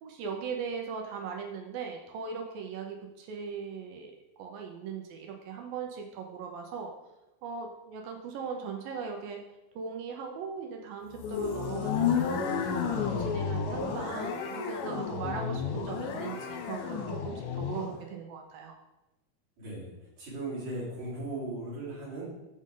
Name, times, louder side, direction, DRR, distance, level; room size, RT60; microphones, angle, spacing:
voice 1, 0.0-4.1 4.4-6.9 7.4-9.4 9.8-12.5 13.0-18.8, right 5 dB, 75° right, 3 dB, 2.4 m, -39 dB
sound 1, 11.1-18.0, left 6 dB, 70° left, 2.1 m, -32 dB
voice 2, 19.6-19.9 20.2-22.2, right 2 dB, 45° right, -8 dB, 4.7 m, -37 dB
14.0 x 5.3 x 3.7 m, 0.99 s
omnidirectional pair, 4.6 m